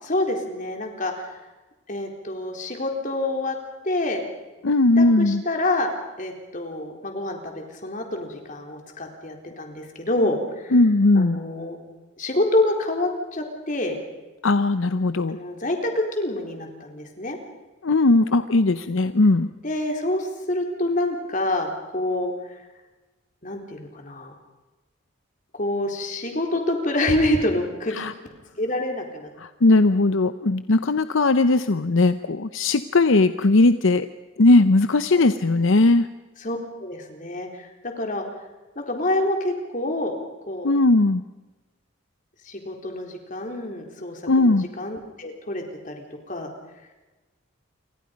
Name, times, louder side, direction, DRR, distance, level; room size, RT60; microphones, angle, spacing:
voice 1, 0.1-1.3 1.9-3.6 3.8-4.2 5.0-5.9 6.2-10.7 11.1-11.8 12.2-14.0 15.3-17.4 19.6-22.6 23.4-24.4 25.5-28.0 28.6-29.3 35.1-35.2 36.4-38.2 38.8-40.1 40.5-40.7 42.5-46.0 46.3-46.5, left 1 dB, 40° left, 3 dB, 4.0 m, -27 dB
voice 2, 4.6-5.4 10.7-11.4 14.4-15.4 17.8-19.5 27.9-28.1 29.4-34.1 34.4-36.1 40.6-41.2 44.3-44.7, left 2 dB, 70° left, 11 dB, 0.7 m, -18 dB
29.0 x 25.5 x 5.3 m, 1.2 s
head